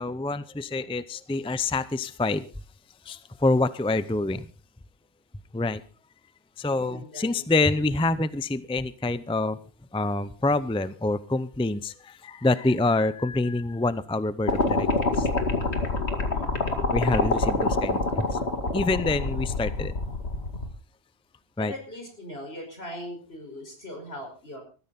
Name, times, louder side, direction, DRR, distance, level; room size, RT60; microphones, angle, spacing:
voice 1, 0.0-2.4 3.0-4.5 5.5-5.8 6.6-9.6 9.9-14.9 15.1-15.3 16.9-18.4 18.7-19.9 21.6-21.7, left 2 dB, 5° left, 15 dB, 0.6 m, -26 dB
voice 2, 6.7-7.5 16.1-16.6 21.6-24.6, left 1 dB, 70° left, 3 dB, 5.8 m, -40 dB
sound 1, 14.5-20.7, left 3 dB, 90° left, 2.5 m, -26 dB
20.0 x 14.0 x 4.2 m, 0.35 s
omnidirectional pair, 1.1 m